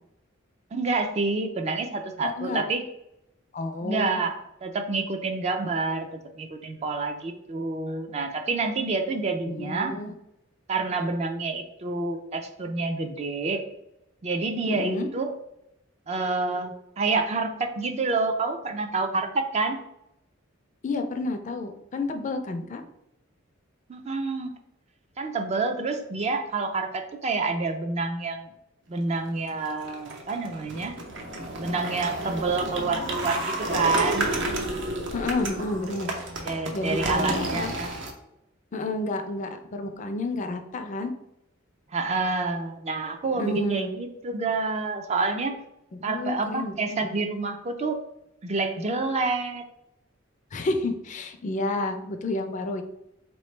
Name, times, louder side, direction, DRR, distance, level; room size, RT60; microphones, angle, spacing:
voice 1, 0.7-2.8 3.8-10.0 10.7-13.7 14.2-15.3 16.1-19.8 23.9-24.5 25.2-28.5 28.9-30.9 31.6-34.4 36.4-37.9 41.9-45.6 46.0-48.0 48.4-49.6, right 3 dB, 35° right, 5 dB, 0.4 m, -28 dB
voice 2, 2.2-2.6 3.5-4.2 9.4-10.1 14.7-15.1 20.8-22.8 35.1-36.1 36.7-37.7 38.7-41.1 43.4-43.9 46.1-47.1 50.5-52.8, left 2 dB, 40° left, 6 dB, 0.4 m, -30 dB
sound 1, 29.5-38.1, right 2 dB, 65° right, 0.7 m, -31 dB
4.0 x 3.0 x 3.2 m, 0.83 s
head